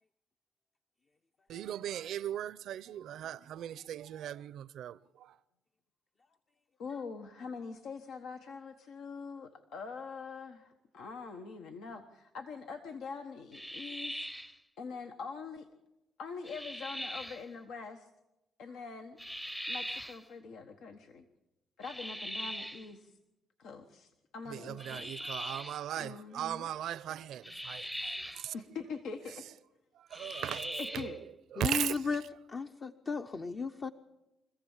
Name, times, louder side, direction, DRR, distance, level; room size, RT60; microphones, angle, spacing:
voice 1, 1.5-5.4 24.5-28.8 29.3-29.5 29.9-31.2 31.5-32.0, right 11 dB, 75° right, 0.6 m, -38 dB
voice 2, 6.8-14.3 14.8-15.7 16.2-18.1 18.6-19.2 19.7-21.2 21.8-23.1 23.6-25.1 26.0-26.6 28.5-29.4 30.3-30.4 30.8-31.2, left 5 dB, 80° left, 1.3 m, -44 dB
sound 1, 13.5-14.6 16.4-17.4 19.2-20.2 21.8-22.9 24.8-25.8 27.4-28.5 30.1-31.2, equal, 5° left, 0.7 m, -41 dB
voice 3, 31.6-32.2 32.5-33.9, left 4 dB, 40° left, 0.8 m, -34 dB
25.0 x 15.5 x 7.3 m
cardioid pair, 90°, 0 cm